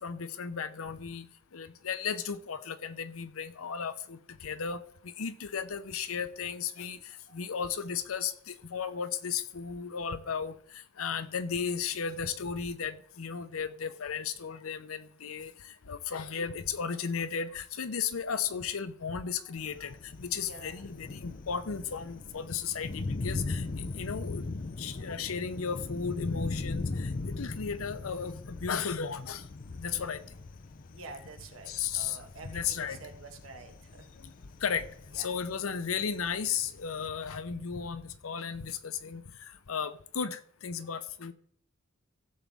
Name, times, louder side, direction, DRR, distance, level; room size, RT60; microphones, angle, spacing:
voice 1, 0.0-1.3 1.5-7.0 7.3-10.5 11.0-24.4 24.8-29.4 29.8-30.2 31.7-32.2 32.4-33.0 34.2-34.3 34.6-34.9 35.1-39.2 39.7-41.3, left 6 dB, 90° left, 0.7 m, -35 dB
voice 2, 7.1-7.6 20.3-20.9 29.9-30.2 30.9-34.1 35.1-35.3, right 3 dB, 75° right, 1.7 m, -49 dB
Thunder, 19.6-37.1, left 3 dB, 40° left, 0.6 m, -39 dB
15.5 x 7.2 x 3.5 m
head